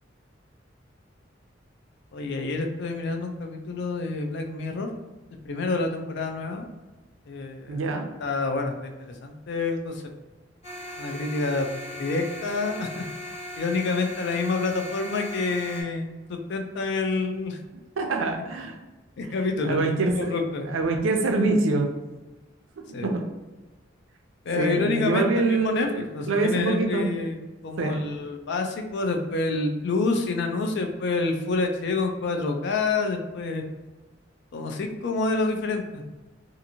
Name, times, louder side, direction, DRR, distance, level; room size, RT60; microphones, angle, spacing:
voice 1, 2.1-4.9 5.4-6.7 7.3-7.8 8.2-10.0 11.0-11.7 11.9-13.1 13.6-17.6 19.2-19.8 20.1-20.7 22.9-23.1 24.4-27.4 27.6-33.6 34.5-36.0, left 3 dB, 60° left, 5 dB, 0.4 m, -28 dB
voice 2, 7.7-8.1 18.0-18.8 19.6-20.3 20.7-21.9 22.9-23.2 24.6-27.2 27.8-28.0, right 3 dB, 85° right, 4 dB, 0.5 m, -25 dB
sound 1, 10.6-15.8, left 1 dB, 35° left, 1.1 m, -38 dB
2.8 x 2.5 x 2.6 m, 1.2 s
head